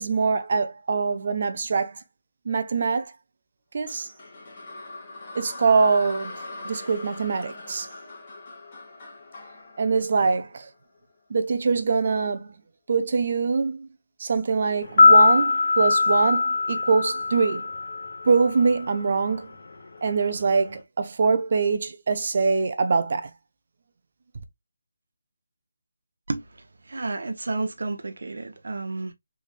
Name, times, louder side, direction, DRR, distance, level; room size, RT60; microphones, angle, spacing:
voice 1, 0.0-2.0 2.5-3.1 3.7-4.1 5.4-7.9 9.8-10.7 11.3-12.5 12.9-13.9 14.2-17.7 18.3-19.5 20.0-23.3, right 4 dB, 35° right, 0.5 m, -23 dB
sound 1, 3.9-11.0, left 2 dB, 20° left, 1.2 m, -41 dB
sound 2, 14.8-19.0 19.3-19.4, left 4 dB, 45° left, 0.8 m, -20 dB
voice 2, 26.9-29.1, right 3 dB, 60° right, 0.8 m, -31 dB
3.4 x 3.3 x 2.3 m
figure-of-eight pair, 175°, 0 cm